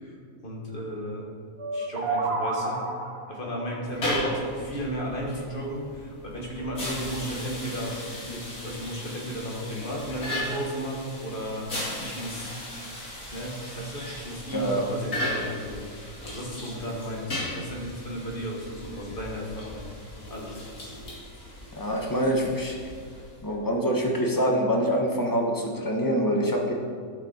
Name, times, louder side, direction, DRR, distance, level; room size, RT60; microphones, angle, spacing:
voice 1, 0.4-1.2 1.7-2.9 3.3-11.7 12.0-12.6 13.3-19.8 20.3-20.6, equal, 35° left, -2 dB, 1.8 m, -34 dB
sound 1, 1.6-3.4, right 3 dB, 45° right, 1.2 m, -29 dB
sound 2, 3.8-23.5, left 1 dB, 75° left, 2.8 m, -36 dB
voice 2, 14.5-14.9 21.8-22.7 23.4-26.7, equal, 15° left, 0 dB, 1.1 m, -25 dB
12.0 x 6.1 x 4.3 m, 2.1 s
omnidirectional pair, 1.6 m